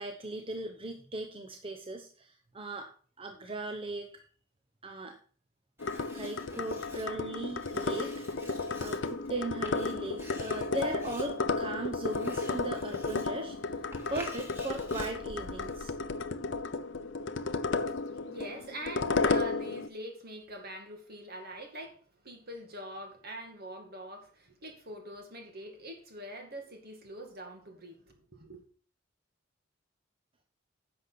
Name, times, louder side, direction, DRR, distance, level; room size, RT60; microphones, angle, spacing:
voice 1, 0.0-2.9 3.2-4.2 4.8-5.2 6.1-8.4 8.8-13.8 14.1-15.9, right 2 dB, 30° right, 0.8 m, -38 dB
sound 1, 5.8-19.9, left 3 dB, 70° left, 0.7 m, -33 dB
Writing, 5.8-16.0, equal, 15° right, 2.4 m, -51 dB
voice 2, 17.8-28.6, right 1 dB, 55° right, 2.3 m, -44 dB
10.5 x 6.9 x 4.2 m
head